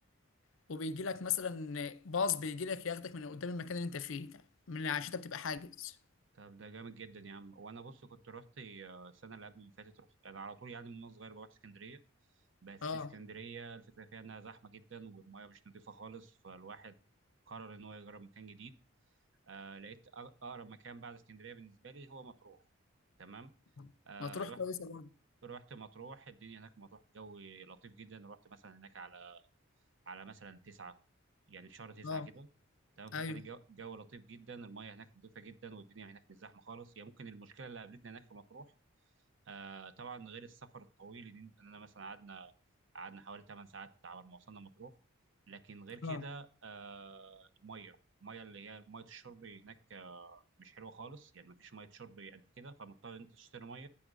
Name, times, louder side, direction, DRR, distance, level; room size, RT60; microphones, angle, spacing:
voice 1, 0.7-4.4 4.7-6.0 12.8-13.1 23.8-23.9 24.2-25.1 32.0-32.3 33.1-33.5 46.0-46.2, left 5 dB, 70° left, 0.6 m, -37 dB
voice 2, 6.3-12.0 12.6-17.0 17.5-18.7 19.5-22.6 23.2-23.5 24.0-24.6 25.4-29.4 30.1-31.0 31.5-32.5 33.0-38.7 39.5-42.5 42.9-44.9 45.5-53.9, right 4 dB, 60° right, 0.8 m, -50 dB
11.0 x 8.5 x 2.6 m
head